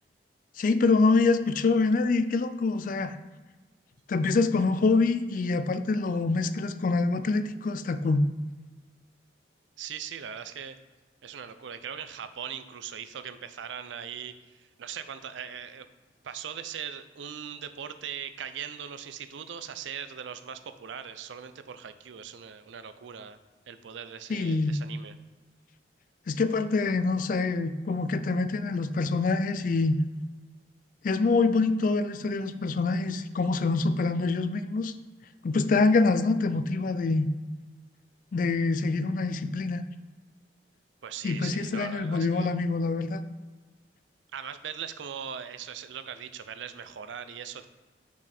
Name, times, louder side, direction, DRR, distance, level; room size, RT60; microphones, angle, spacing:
voice 1, 0.6-3.2 4.1-8.2 24.3-24.8 26.3-30.0 31.0-34.9 35.4-37.3 38.3-39.8 41.2-43.2, left 3 dB, 45° left, 11 dB, 0.3 m, -25 dB
voice 2, 9.8-10.8 11.2-15.9 16.2-23.4 23.7-25.2 41.0-42.5 44.3-47.7, right 8 dB, 85° right, 11 dB, 0.5 m, -40 dB
6.0 x 4.1 x 4.3 m, 1.3 s
head